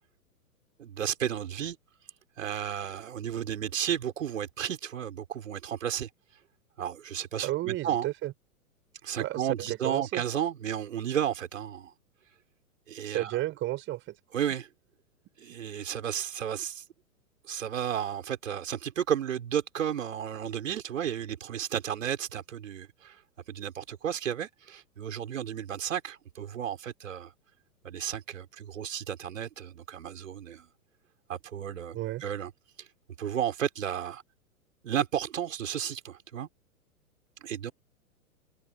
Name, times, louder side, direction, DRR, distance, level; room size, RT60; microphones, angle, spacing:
voice 1, 0.8-1.8 2.4-6.1 6.8-8.1 9.0-11.9 12.9-13.3 14.3-14.7 15.4-16.8 17.5-23.2 23.5-27.3 27.8-30.7 31.3-32.5 32.8-32.9 33.2-34.2 34.8-36.5 37.4-37.7, right 9 dB, 60° right, 5.9 m, -33 dB
voice 2, 7.4-8.3 9.2-10.2 13.0-14.2 31.9-32.2, right 16 dB, 25° right, 5.1 m, -32 dB
figure-of-eight pair, 110°, 44 cm